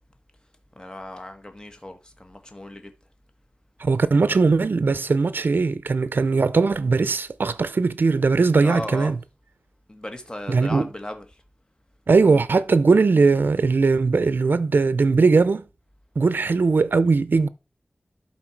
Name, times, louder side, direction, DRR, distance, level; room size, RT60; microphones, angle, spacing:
voice 1, 0.7-2.9 8.6-9.2 9.9-11.4 16.4-16.6, left 1 dB, 25° left, 1.5 m, -36 dB
voice 2, 3.8-9.2 10.5-10.9 12.1-15.6 16.2-17.5, right 4 dB, 70° right, 0.5 m, -19 dB
11.5 x 4.3 x 4.6 m
wide cardioid pair, 60°, 4 cm